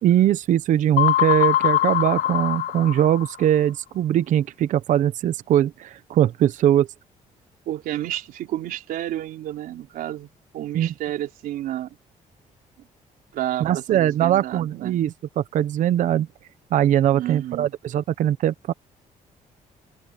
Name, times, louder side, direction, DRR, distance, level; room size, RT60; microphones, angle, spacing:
voice 1, 0.0-6.9 10.7-10.9 13.6-16.3 16.7-18.7, right 11 dB, 60° right, 0.8 m, -21 dB
sound 1, 1.0-3.6, left 13 dB, 65° left, 0.6 m, -22 dB
voice 2, 7.7-12.0 13.3-15.0 17.1-17.7, right 13 dB, 85° right, 3.8 m, -31 dB
open air
cardioid pair, 160°, 15 cm